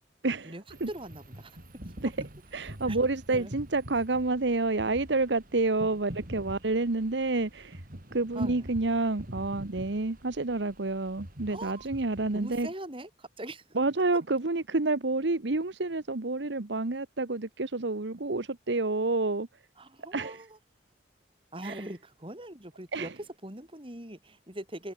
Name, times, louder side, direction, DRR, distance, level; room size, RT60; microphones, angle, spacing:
voice 1, 0.4-1.6 1.9-2.0 2.9-3.0 3.3-3.5 8.3-8.7 11.5-11.9 12.3-13.8 19.8-20.6 21.5-24.9, right 1 dB, 30° right, 4.9 m, -42 dB
sound 1, 0.7-12.7, equal, 50° right, 3.8 m, -45 dB
voice 2, 2.5-7.8 8.1-12.7 13.8-19.5 20.1-20.3 21.6-21.7 22.9-23.1, right 3 dB, 70° right, 1.1 m, -29 dB
head